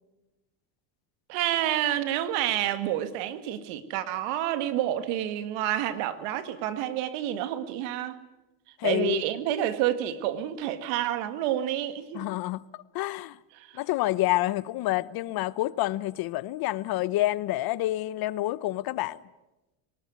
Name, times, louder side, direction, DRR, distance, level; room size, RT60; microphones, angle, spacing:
voice 1, 1.3-8.2 8.8-12.3 13.6-13.8, right 12 dB, 80° right, 2.0 m, -29 dB
voice 2, 8.8-9.2 12.1-13.4 13.7-19.2, left 16 dB, 55° left, 0.9 m, -28 dB
23.5 x 19.0 x 9.4 m
cardioid pair, 135°, 44 cm